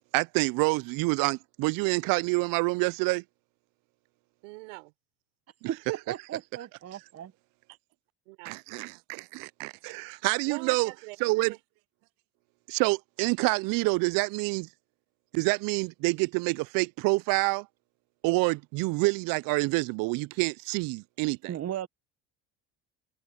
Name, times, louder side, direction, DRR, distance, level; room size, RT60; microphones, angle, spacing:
voice 1, 0.1-3.2 5.6-5.7 8.4-10.9 11.2-11.5 12.7-14.7 15.3-17.7 18.2-21.5, right 26 dB, 65° right, 0.5 m, -27 dB
voice 2, 4.4-4.9 8.3-8.6 10.5-11.6, right 26 dB, 85° right, 5.3 m, -43 dB
voice 3, 5.7-7.3 21.5-21.9, right 11 dB, 45° right, 1.2 m, -35 dB
supercardioid pair, 85°, 36 cm